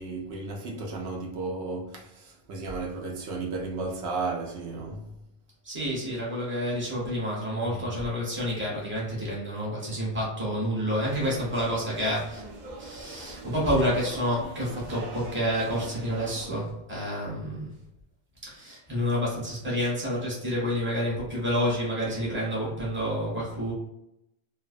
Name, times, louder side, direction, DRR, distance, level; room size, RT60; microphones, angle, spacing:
voice 1, 0.0-5.1 7.7-8.0, right 3 dB, 80° right, 0.9 m, -34 dB
voice 2, 5.6-12.4 12.8-17.7 18.5-23.7, equal, 10° right, 0.8 m, -29 dB
sound 1, 11.0-16.5, right 3 dB, 55° right, 0.5 m, -42 dB
2.4 x 2.2 x 2.4 m
omnidirectional pair, 1.1 m